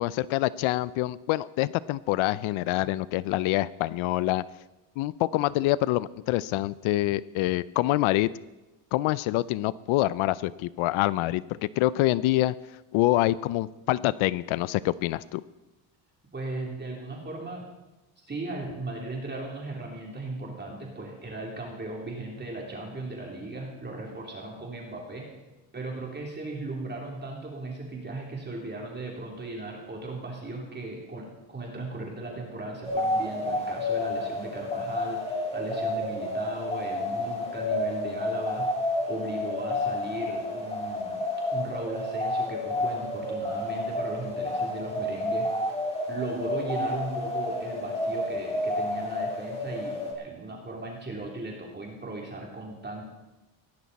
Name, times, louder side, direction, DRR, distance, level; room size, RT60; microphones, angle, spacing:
voice 1, 0.0-4.4 5.0-8.3 8.9-11.4 11.8-12.5 12.9-15.4, left 16 dB, 75° left, 19 dB, 0.6 m, -26 dB
voice 2, 16.3-17.6 18.2-25.3 25.7-38.7 39.1-41.2 41.5-45.5 46.1-53.0, right 2 dB, 20° right, -1 dB, 3.2 m, -37 dB
sound 1, 32.8-50.1, left 1 dB, 10° left, 4.0 m, -30 dB
17.5 x 14.0 x 4.2 m, 1.0 s
cardioid pair, 115°, 50 cm